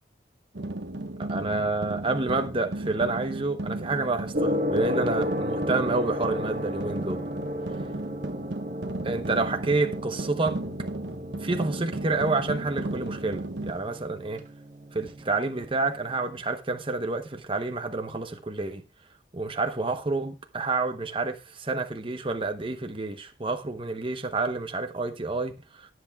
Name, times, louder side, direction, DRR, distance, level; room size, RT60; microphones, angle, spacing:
sound 1, 0.5-13.7, right 2 dB, 75° right, 1.3 m, -35 dB
voice 1, 1.2-7.2 9.0-10.6 11.4-14.4 14.9-18.8 19.3-25.9, right 3 dB, 30° right, 0.9 m, -29 dB
Gong, 4.3-16.3, left 1 dB, 45° right, 1.8 m, -34 dB
23.0 x 7.9 x 2.3 m
head